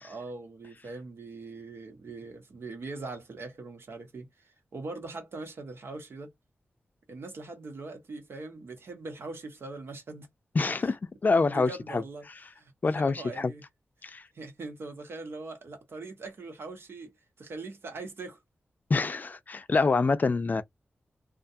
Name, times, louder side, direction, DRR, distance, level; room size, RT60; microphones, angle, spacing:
voice 1, 0.0-6.3 7.1-10.3 11.5-12.2 12.6-13.6 14.3-17.1 17.4-18.4, right 3 dB, 75° right, 1.1 m, -41 dB
voice 2, 10.5-12.0 12.8-13.5 14.0-14.2 18.9-20.6, left 3 dB, 45° left, 0.4 m, -26 dB
2.4 x 2.2 x 2.6 m
cardioid pair, 65°, 4 cm